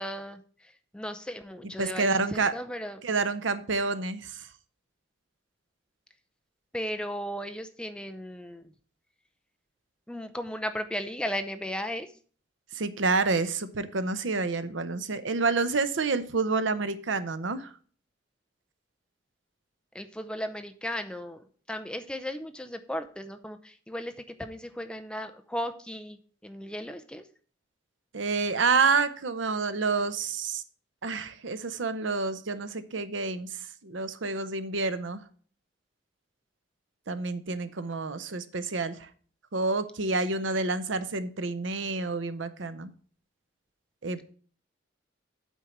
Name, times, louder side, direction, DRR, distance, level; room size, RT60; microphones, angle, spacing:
voice 1, 0.0-3.0 6.7-8.6 10.1-12.1 19.9-27.3, equal, 5° left, 8 dB, 0.5 m, -36 dB
voice 2, 1.8-2.5 3.0-4.5 12.7-17.7 28.1-30.6 31.0-35.2 37.1-39.1 39.5-42.9 44.0-44.2, right 4 dB, 75° right, 12 dB, 0.8 m, -28 dB
8.2 x 4.5 x 7.1 m, 0.43 s
head